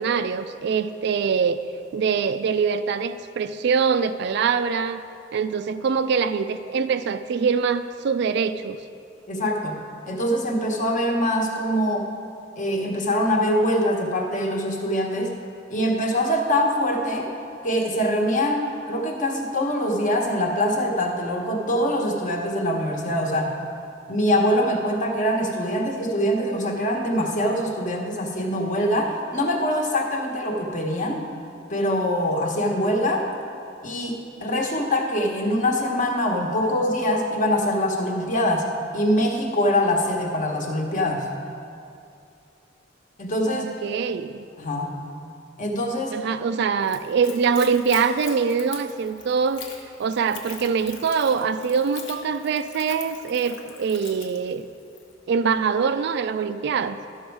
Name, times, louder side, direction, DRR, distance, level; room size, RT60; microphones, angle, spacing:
voice 1, 0.0-1.6 1.9-5.0 5.3-8.8 43.5-44.4 46.1-49.7 50.0-54.7 55.3-57.0, right 6 dB, 60° right, 11 dB, 0.3 m, -24 dB
voice 2, 9.3-9.8 10.1-12.1 12.6-15.4 15.7-17.3 17.6-23.5 24.1-31.2 31.7-33.3 33.8-41.3 43.2-43.7 44.6-44.9 45.6-46.2, equal, 45° left, 1 dB, 1.1 m, -24 dB
Splash splatter / Trickle dribble, 46.8-55.1, left 6 dB, 75° left, 1.0 m, -42 dB
12.0 x 6.3 x 4.6 m, 2.6 s
head